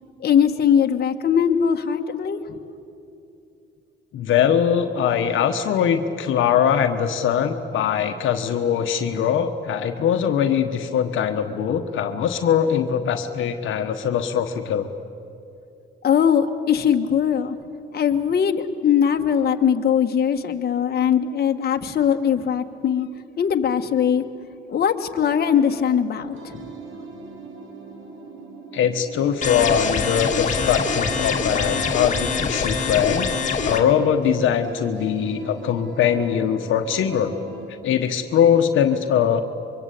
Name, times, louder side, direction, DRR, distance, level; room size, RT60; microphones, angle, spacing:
voice 1, 0.2-2.4 16.0-17.6 17.9-23.1 23.4-24.2 24.7-26.6, left 8 dB, 55° left, 5 dB, 1.5 m, -20 dB
voice 2, 4.1-14.9 28.7-33.3 33.6-37.4 37.8-39.4, left 8 dB, 80° left, 6 dB, 1.3 m, -21 dB
sound 1, 26.3-37.7, right 4 dB, 80° right, 4.2 m, -40 dB
sound 2, 29.4-33.8, left 5 dB, 35° left, 2.5 m, -24 dB
24.5 x 23.5 x 8.4 m, 2.6 s
cardioid pair, 90°, 20 cm